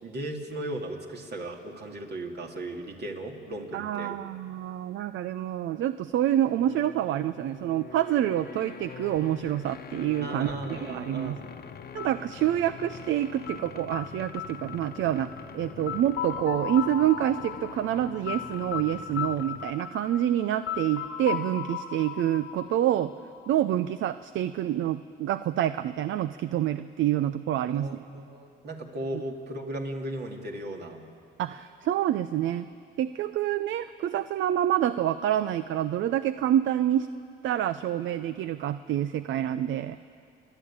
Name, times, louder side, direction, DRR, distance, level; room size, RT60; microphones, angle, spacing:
voice 1, 0.0-4.2 10.2-11.4 27.7-31.0, right 1 dB, 55° right, 2 dB, 2.7 m, -36 dB
voice 2, 3.7-11.4 11.9-23.1 23.5-27.9 31.4-32.7 33.0-37.1 37.4-40.0, right 11 dB, 75° right, 13 dB, 0.6 m, -27 dB
sound 1, 6.4-19.8, left 7 dB, 55° left, 1.0 m, -45 dB
sound 2, 12.0-23.7, left 10 dB, 80° left, 1.4 m, -37 dB
29.5 x 11.5 x 8.8 m, 2.5 s
cardioid pair, 90°, 20 cm